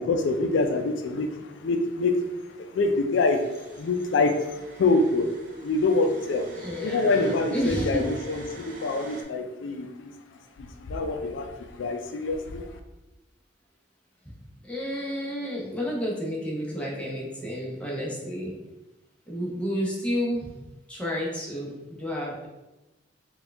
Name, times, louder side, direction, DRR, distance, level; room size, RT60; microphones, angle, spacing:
voice 1, 0.0-12.8, left 3 dB, 85° left, 6 dB, 0.4 m, -26 dB
sound 1, 3.1-9.2, right 2 dB, 45° right, 0.6 m, -47 dB
voice 2, 6.6-8.0 14.6-18.5 19.3-20.5 20.9-21.7 22.0-22.5, equal, 5° left, -4 dB, 0.7 m, -30 dB
4.3 x 2.3 x 3.4 m, 1.0 s
head